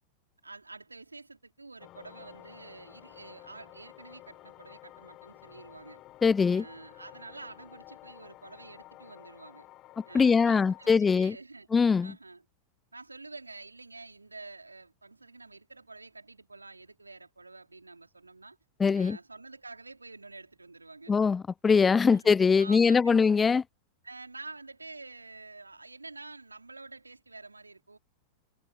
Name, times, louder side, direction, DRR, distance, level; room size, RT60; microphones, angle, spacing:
voice 1, 0.4-6.0 6.5-9.7 10.0-11.7 12.0-12.4 12.9-18.6 18.9-21.1 22.1-22.3 22.6-23.2 24.0-28.0, right 3 dB, 80° right, 3.4 m, -48 dB
sound 1, 1.8-11.0, left 16 dB, 35° left, 3.4 m, -52 dB
voice 2, 6.2-6.6 10.1-11.3 11.7-12.1 18.8-19.2 21.1-23.6, left 5 dB, 15° left, 0.6 m, -22 dB
figure-of-eight pair, 90°, 0 cm